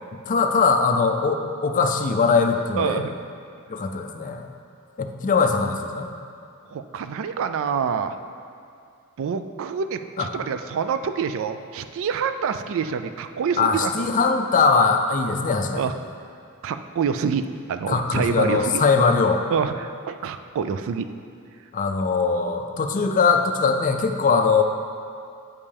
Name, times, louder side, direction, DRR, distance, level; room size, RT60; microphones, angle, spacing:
voice 1, 0.1-3.0 3.7-4.5 5.0-6.1 10.2-10.3 13.6-15.9 17.9-19.4 21.7-24.6, left 4 dB, 35° left, 5 dB, 0.4 m, -21 dB
voice 2, 2.8-3.1 6.7-8.2 9.2-13.9 15.7-15.9 16.6-18.8 19.5-21.1, right 6 dB, 60° right, 10 dB, 0.3 m, -26 dB
8.2 x 5.4 x 3.4 m, 2.4 s
head